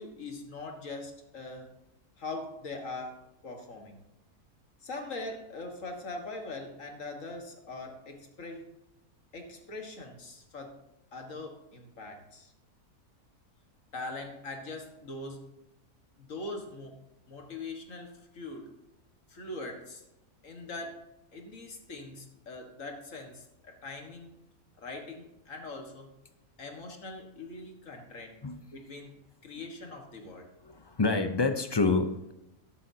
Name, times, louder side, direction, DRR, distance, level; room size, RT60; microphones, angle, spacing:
voice 1, 0.0-1.7 2.2-4.0 4.8-8.7 9.3-10.8 11.1-12.5 13.9-15.5 16.2-17.0 17.3-18.8 19.3-20.0 20.4-24.3 24.8-26.1 26.6-30.5, left 2 dB, 60° left, 3 dB, 2.0 m, -42 dB
voice 2, 30.6-32.3, left 3 dB, 35° left, 8 dB, 0.4 m, -27 dB
13.0 x 11.5 x 2.8 m, 0.89 s
omnidirectional pair, 1.6 m